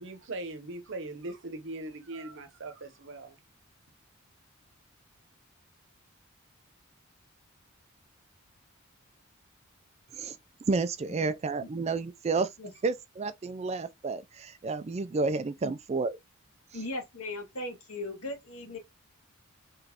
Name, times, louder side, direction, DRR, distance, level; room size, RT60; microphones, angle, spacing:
voice 1, 0.0-3.4, right 2 dB, 60° right, 0.8 m, -40 dB
voice 2, 10.7-12.5 12.8-16.2, right 3 dB, 30° right, 0.3 m, -30 dB
voice 3, 16.7-18.8, left 1 dB, 85° left, 2.0 m, -38 dB
4.0 x 3.2 x 2.8 m
head